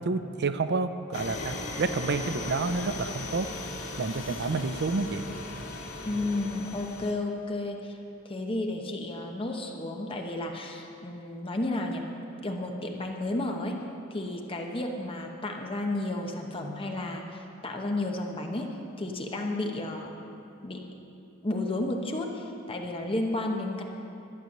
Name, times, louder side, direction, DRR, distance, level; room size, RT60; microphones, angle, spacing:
voice 1, 0.0-3.5 4.0-5.3, right 3 dB, 50° right, 10 dB, 0.5 m, -29 dB
sound 1, 1.1-7.1, left 2 dB, 85° left, 2.4 m, -37 dB
voice 2, 6.0-8.0 8.2-12.0 12.4-13.8 14.1-18.7 19.0-20.1 20.6-20.8 21.4-23.8, left 2 dB, 25° left, 2 dB, 0.9 m, -32 dB
12.0 x 9.0 x 6.6 m, 2.7 s
head